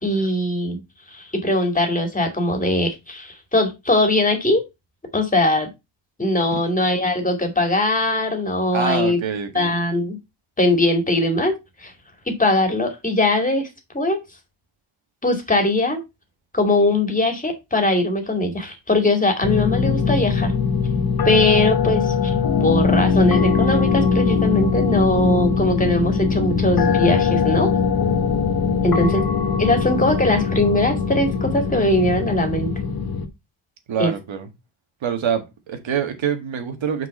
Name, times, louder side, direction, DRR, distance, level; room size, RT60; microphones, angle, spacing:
voice 1, 0.0-0.8 1.1-4.6 5.1-5.7 6.2-9.2 9.5-10.2 10.6-11.5 11.8-11.9 12.4-13.7 13.9-14.2 15.2-16.0 16.5-20.5 21.2-22.1 22.6-27.7 28.8-29.2 29.6-32.7 34.0-34.1, left 1 dB, 15° left, 2.3 m, -20 dB
voice 2, 8.7-9.7 28.7-29.2 33.9-34.5 35.0-37.1, right 7 dB, 75° right, 1.8 m, -26 dB
sound 1, 19.4-33.3, left 5 dB, 50° left, 1.1 m, -21 dB
5.8 x 4.8 x 5.3 m
wide cardioid pair, 125°, 46 cm